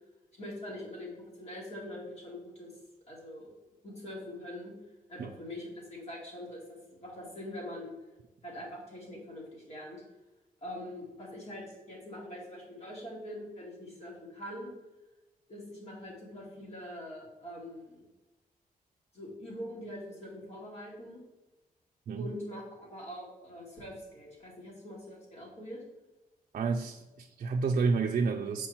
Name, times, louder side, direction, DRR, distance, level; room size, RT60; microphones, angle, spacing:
voice 1, 0.3-2.8 3.1-3.5 3.8-4.7 5.1-7.9 8.4-10.0 10.6-14.7 15.5-18.0 19.1-21.2 22.2-25.8, left 1 dB, 45° left, -4 dB, 2.6 m, -43 dB
voice 2, 26.5-28.7, right 4 dB, 55° right, 2 dB, 0.5 m, -30 dB
7.4 x 4.7 x 4.3 m, 1.1 s
wide cardioid pair, 160°, 15 cm